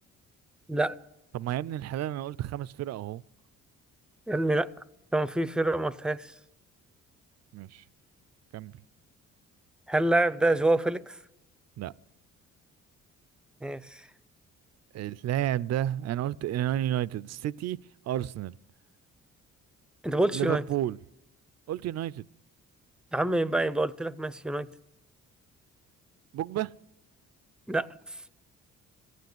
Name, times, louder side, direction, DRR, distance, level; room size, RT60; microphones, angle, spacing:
voice 1, 1.3-3.2 7.5-7.8 8.5-8.8 11.8-11.9 14.9-17.8 18.0-18.6 20.3-21.0 21.7-22.3 26.3-26.7, right 12 dB, 60° right, 0.5 m, -31 dB
voice 2, 4.3-4.7 5.1-6.3 9.9-11.2 13.6-14.1 20.0-20.6 23.1-24.7 27.7-28.1, right 2 dB, 5° right, 0.5 m, -27 dB
15.5 x 9.4 x 9.6 m
cardioid pair, 90°, 30 cm